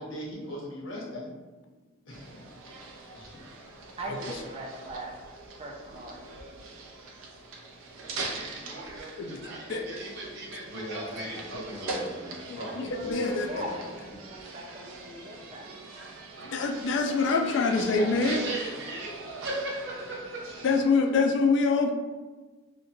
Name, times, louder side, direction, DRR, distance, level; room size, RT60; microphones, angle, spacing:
voice 1, 0.0-1.3 2.1-2.8 3.1-3.4 10.7-14.2, equal, 90° left, -4 dB, 0.9 m, -40 dB
sound 1, 2.1-20.8, right 3 dB, 90° right, 0.4 m, -42 dB
voice 2, 4.0-5.1 5.6-6.3 12.9-15.7, right 1 dB, 30° right, 0 dB, 0.4 m, -40 dB
voice 3, 8.0-12.1 17.1-20.5, right 2 dB, 65° right, -3 dB, 0.8 m, -39 dB
voice 4, 12.5-13.6 16.5-18.4 20.6-21.9, left 4 dB, 65° left, 3 dB, 0.4 m, -25 dB
2.9 x 2.1 x 2.7 m, 1.3 s
head